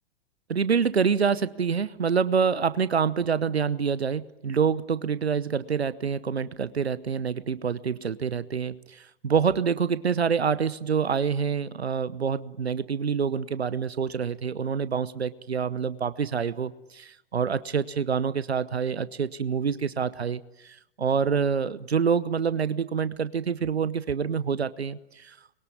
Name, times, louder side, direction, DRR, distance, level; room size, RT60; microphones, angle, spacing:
voice 1, 0.5-25.3, right 6 dB, 90° right, 16 dB, 0.9 m, -26 dB
25.5 x 22.5 x 9.4 m, 0.94 s
hypercardioid pair, 100°, 31 cm